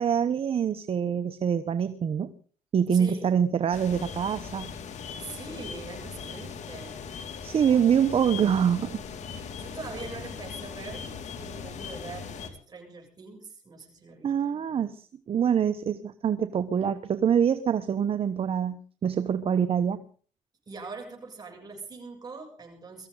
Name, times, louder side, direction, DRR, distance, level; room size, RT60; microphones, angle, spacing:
voice 1, 0.0-2.3 2.7-4.7 7.4-9.0 14.2-20.0, right 8 dB, 50° right, 11 dB, 1.0 m, -25 dB
voice 2, 2.9-3.3 5.2-7.1 7.7-7.9 9.6-14.6 20.7-23.1, right 4 dB, 30° right, 0 dB, 7.8 m, -42 dB
sound 1, 3.7-12.5, left 6 dB, 65° left, 2.6 m, -39 dB
23.0 x 14.5 x 3.9 m, 0.41 s
cardioid pair, 95°, 13 cm